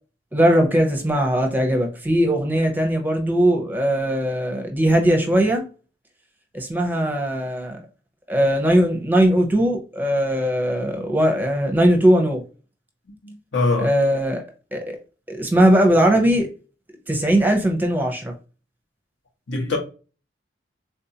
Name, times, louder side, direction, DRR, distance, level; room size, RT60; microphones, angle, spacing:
voice 1, 0.3-5.6 6.5-7.8 8.3-12.4 13.8-14.4 14.7-15.0 15.3-16.5 17.1-18.3, right 1 dB, 10° right, 0.6 m, -19 dB
voice 2, 13.2-13.9 19.5-19.8, left 3 dB, 70° left, 1.0 m, -23 dB
3.6 x 2.5 x 2.8 m
head